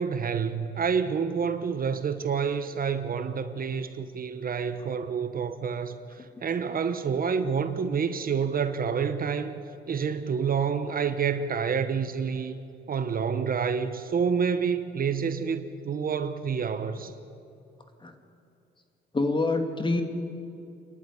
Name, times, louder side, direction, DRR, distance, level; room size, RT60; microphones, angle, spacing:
voice 1, 0.0-9.6 9.9-12.6 12.9-17.1, right 6 dB, 45° right, 1.2 m, -28 dB
voice 2, 19.1-20.0, left 2 dB, 25° left, 2.6 m, -25 dB
28.0 x 11.0 x 10.0 m
cardioid pair, 90°, 20 cm